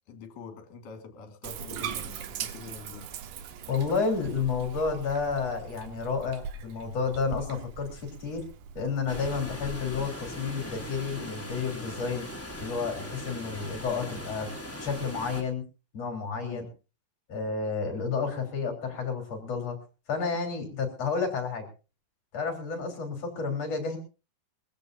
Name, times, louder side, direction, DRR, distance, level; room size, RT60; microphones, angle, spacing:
voice 1, 0.1-3.1 16.5-16.7, left 5 dB, 65° left, 3.6 m, -45 dB
Bathtub (filling or washing), 1.4-9.8, right 7 dB, 70° right, 2.5 m, -40 dB
voice 2, 3.7-8.4 8.7-12.3 12.6-14.5 14.8-15.6 15.9-16.6 17.3-19.8 20.1-21.7 22.3-24.0, left 5 dB, 45° left, 4.5 m, -31 dB
Water, 9.1-15.4, left 1 dB, 5° left, 2.7 m, -39 dB
22.5 x 15.5 x 2.7 m
omnidirectional pair, 4.1 m